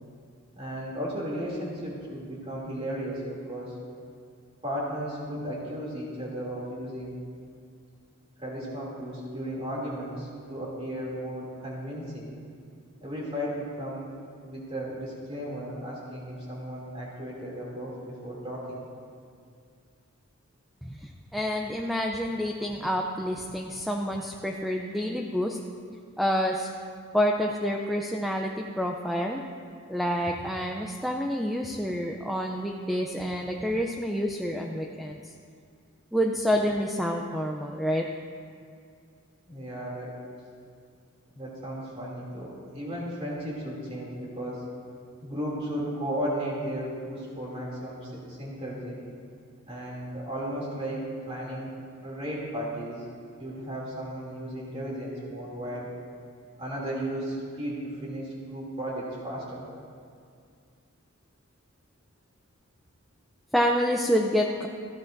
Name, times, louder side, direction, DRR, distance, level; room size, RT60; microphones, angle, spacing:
voice 1, 0.5-3.8 4.6-7.2 8.4-12.3 13.0-14.1 14.4-18.8 39.5-40.1 41.3-44.6 45.2-49.0 49.7-51.7 52.0-53.1 53.4-55.9 56.6-59.6, equal, 25° right, -5 dB, 2.7 m, -35 dB
voice 2, 20.8-25.6 26.2-26.7 27.1-29.4 29.9-35.2 36.1-38.1 63.5-64.7, equal, ahead, 1 dB, 0.4 m, -28 dB
17.5 x 13.5 x 2.6 m, 2.3 s
head